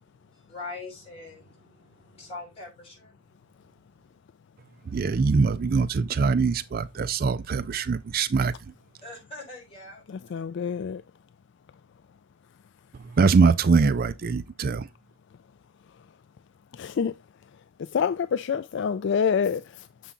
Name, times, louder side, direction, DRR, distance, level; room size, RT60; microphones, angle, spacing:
voice 1, 0.0-4.2 9.0-10.8, left 3 dB, 30° left, 5.6 m, -44 dB
voice 2, 4.9-8.5 13.0-14.9, right 4 dB, 45° right, 0.4 m, -23 dB
voice 3, 10.1-11.0 16.7-17.2 17.8-20.1, left 6 dB, 60° left, 0.3 m, -27 dB
7.1 x 5.6 x 3.7 m
head